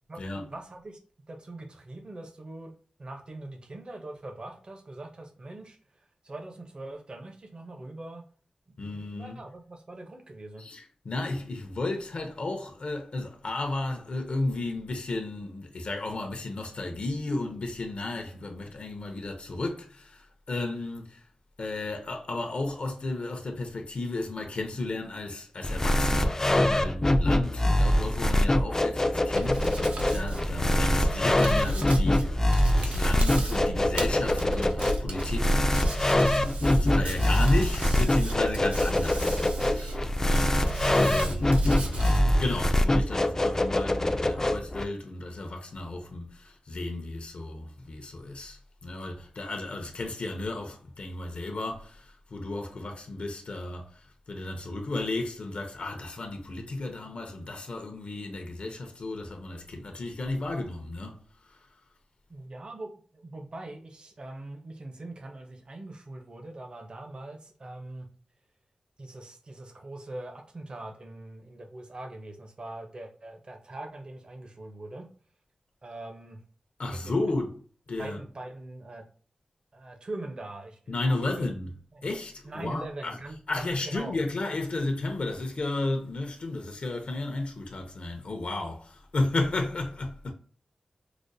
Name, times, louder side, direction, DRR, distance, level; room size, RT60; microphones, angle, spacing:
voice 1, 0.1-1.0 1.3-2.7 3.0-5.8 6.2-8.2 8.8-10.6 62.3-68.1 69.0-75.1 75.8-76.4 76.9-77.3 78.0-79.0 79.7-81.5 81.9-82.1 82.4-84.1, right 2 dB, 45° right, 0.7 m, -42 dB
voice 2, 8.8-9.4 10.6-21.3 21.6-61.7 76.8-77.5 77.9-78.2 80.9-81.7 82.0-83.2 83.5-90.3, left 2 dB, 60° left, 0.6 m, -33 dB
sound 1, 25.6-44.8, left 1 dB, 25° left, 0.3 m, -24 dB
Hands, 29.3-42.2, right 1 dB, 90° right, 0.7 m, -33 dB
4.9 x 2.1 x 2.6 m
wide cardioid pair, 100°, 2 cm